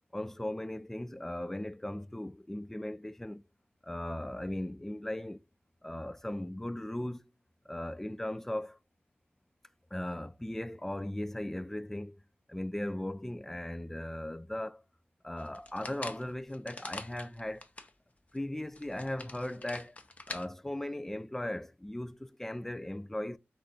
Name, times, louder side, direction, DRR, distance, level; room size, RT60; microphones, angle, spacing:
voice 1, 0.1-3.4 3.8-5.4 5.8-7.3 7.7-8.8 9.9-12.2 12.5-14.8 15.2-17.7 18.3-20.0 20.3-23.4, left 1 dB, 10° left, 0.3 m, -38 dB
sound 1, 15.4-17.9 18.4-18.5 18.7-20.4, left 2 dB, 30° left, 0.8 m, -45 dB
3.9 x 3.8 x 3.4 m
wide cardioid pair, 95°, 4 cm